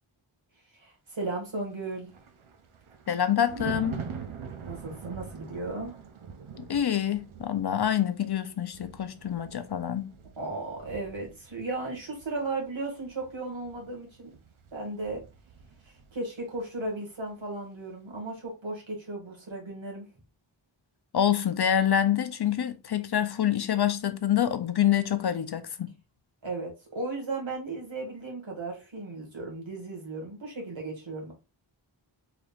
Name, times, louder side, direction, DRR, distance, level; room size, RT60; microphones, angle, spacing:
voice 1, 0.7-2.1 4.7-6.0 10.4-14.3 14.7-15.2 15.8-20.1 26.4-31.3, right 2 dB, 70° right, 1.6 m, -35 dB
Thunder, 1.7-16.3 16.6-16.9, right 6 dB, 90° right, 0.6 m, -44 dB
voice 2, 3.1-4.0 6.6-10.1 21.1-25.9, left 10 dB, 55° left, 0.5 m, -26 dB
3.8 x 3.4 x 2.4 m
wide cardioid pair, 60°, 47 cm